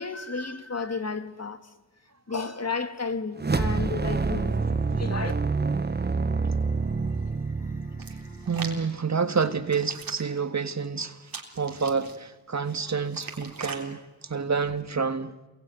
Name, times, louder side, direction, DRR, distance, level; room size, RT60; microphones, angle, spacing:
voice 1, 0.0-1.7 2.3-5.3, left 4 dB, 45° left, 2.4 m, -32 dB
sound 1, 3.4-8.8, right 4 dB, 30° right, 1.0 m, -27 dB
sound 2, 3.6-8.8, left 1 dB, 20° left, 7.8 m, -53 dB
Hands, 8.0-8.8 9.4-10.4 11.3-12.2 12.7-13.8 14.5-14.8, right 5 dB, 75° right, 3.7 m, -41 dB
voice 2, 8.5-15.3, right 5 dB, 50° right, 1.6 m, -28 dB
28.0 x 22.5 x 9.4 m
cardioid pair, 50°, 35 cm